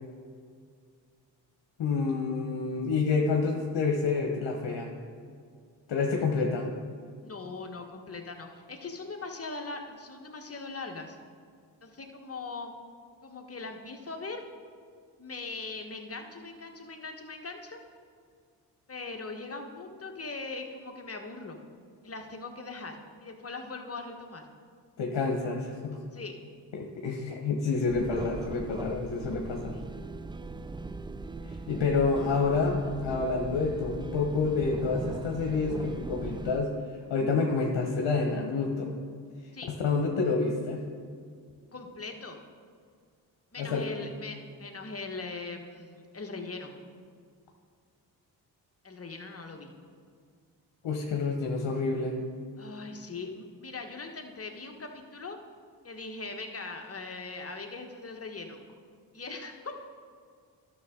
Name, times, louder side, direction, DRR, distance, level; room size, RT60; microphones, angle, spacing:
voice 1, 1.8-4.9 5.9-6.7 25.0-26.0 26.7-29.8 31.5-36.7 37.1-38.9 39.7-40.8 43.6-43.8 50.8-52.1, left 4 dB, 65° left, 1 dB, 1.2 m, -28 dB
voice 2, 7.2-11.2 11.8-12.7 13.2-14.4 15.2-17.8 18.9-21.6 22.0-24.5 26.1-26.4 39.5-39.7 41.7-42.4 43.5-46.7 48.8-49.7 52.6-55.4 55.8-58.6 59.1-59.9, left 3 dB, 30° left, 3 dB, 1.4 m, -40 dB
sound 1, 27.9-36.6, right 3 dB, 10° right, 0.3 m, -39 dB
12.5 x 6.3 x 3.8 m, 2.1 s
hypercardioid pair, 40°, 48 cm